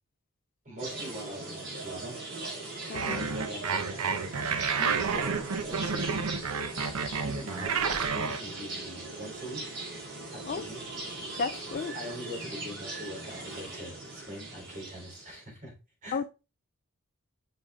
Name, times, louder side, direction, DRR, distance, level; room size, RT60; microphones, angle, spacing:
voice 1, 0.7-2.2 3.0-4.5 4.7-6.3 7.2-9.6 10.3-10.9 11.9-15.7 16.0-16.2, equal, 35° right, 3.5 m, -42 dB
sound 1, 0.8-15.4, right 2 dB, 50° right, 3.7 m, -40 dB
voice 2, 2.9-3.2 4.8-5.0 10.4-10.6 11.4-11.9 16.1-16.2, left 4 dB, 40° left, 0.3 m, -33 dB
sound 2, 2.9-8.4, right 5 dB, 90° right, 0.7 m, -30 dB
8.8 x 5.4 x 2.4 m
head